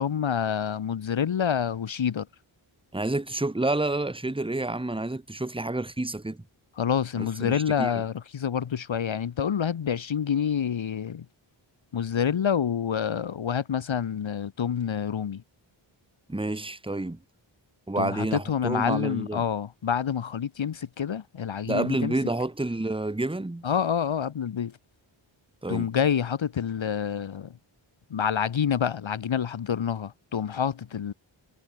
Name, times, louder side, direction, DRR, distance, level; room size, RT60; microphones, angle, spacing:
voice 1, 0.0-2.3 6.8-11.2 11.9-15.4 18.0-22.2 23.6-24.7 25.7-27.5 28.1-31.1, left 8 dB, 65° left, 1.0 m, -27 dB
voice 2, 2.9-6.4 7.2-7.9 16.3-17.2 17.9-19.4 21.7-23.6 25.6-25.9, right 2 dB, 10° right, 1.3 m, -29 dB
wide cardioid pair, 75°, 49 cm